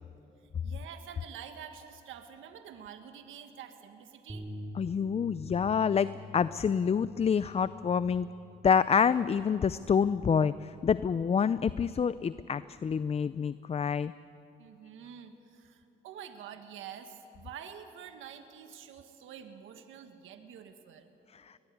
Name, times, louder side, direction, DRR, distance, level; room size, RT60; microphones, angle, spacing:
voice 1, 0.4-4.5 14.6-21.1, right 8 dB, 80° right, 7 dB, 1.5 m, -47 dB
sound 1, 4.3-10.5, left 2 dB, 15° right, 3.0 m, -47 dB
voice 2, 4.8-8.3 8.6-14.1 21.3-21.4, left 6 dB, 30° left, 15 dB, 0.5 m, -27 dB
21.0 x 21.0 x 9.4 m, 2.8 s
cardioid pair, 90°, 20 cm